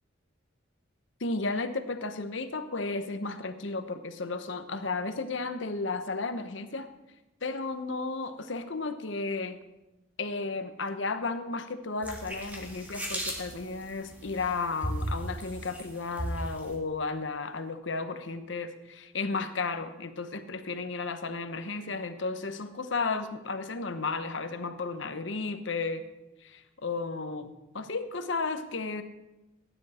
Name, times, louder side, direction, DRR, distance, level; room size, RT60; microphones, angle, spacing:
voice 1, 1.2-6.9 7.4-9.6 10.2-26.0 26.4-29.0, left 3 dB, 65° left, 9 dB, 1.0 m, -33 dB
sound 1, 12.0-16.7, equal, 10° right, 2.3 m, -37 dB
17.5 x 10.0 x 4.3 m, 1.0 s
head